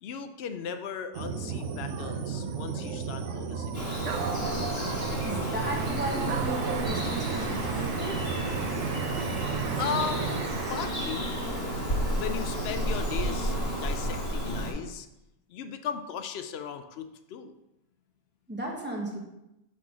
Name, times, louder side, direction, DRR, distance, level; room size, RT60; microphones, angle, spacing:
voice 1, 0.0-4.0 9.8-11.4 12.1-15.1 15.5-17.5, left 7 dB, 75° left, 8 dB, 0.5 m, -37 dB
sound 1, 1.1-10.6, right 6 dB, 65° right, 0.8 m, -33 dB
Bird vocalization bird call bird song, 3.7-14.7, equal, 40° left, 2.3 m, -32 dB
voice 2, 5.2-7.5 7.8-8.2 18.5-19.2, right 1 dB, 10° right, -3 dB, 1.1 m, -35 dB
sound 2, 5.6-11.1, right 7 dB, 80° right, 1.1 m, -39 dB
6.0 x 3.7 x 6.1 m, 0.91 s
omnidirectional pair, 1.6 m